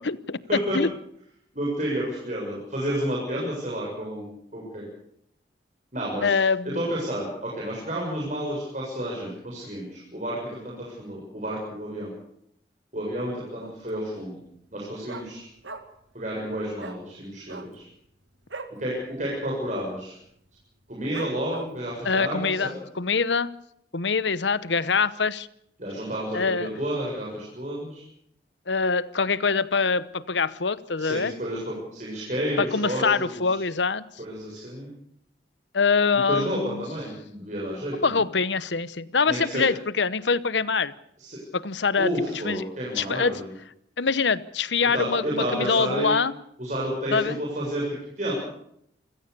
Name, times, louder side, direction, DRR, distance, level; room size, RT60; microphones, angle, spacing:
voice 1, 0.0-0.4 0.7-0.9 6.2-6.8 22.0-23.5 23.9-25.5 26.3-26.7 28.7-31.3 32.6-34.0 35.7-36.8 38.0-40.9 41.5-42.1 42.4-42.7 42.9-43.3 44.0-46.3 47.1-47.4, left 5 dB, 80° left, 17 dB, 1.0 m, -24 dB
voice 2, 1.5-4.8 5.9-6.4 6.6-12.1 12.9-14.4 14.7-15.5 16.1-17.9 18.7-20.2 20.9-22.7 25.8-28.0 31.0-33.6 34.2-34.9 36.1-38.2 39.3-39.6 41.2-41.4 41.9-43.5 44.9-46.1 46.6-48.3, equal, 40° right, -4 dB, 7.4 m, -31 dB
Dog, 13.6-14.0 14.3-14.4 14.7-16.1 16.4-16.5 16.8-17.0 17.4-18.8 19.2-19.3 19.6-20.0 20.5-20.6 21.1-21.9 22.4-22.5, right 3 dB, 85° right, 2.2 m, -40 dB
28.0 x 16.5 x 6.9 m, 0.71 s
head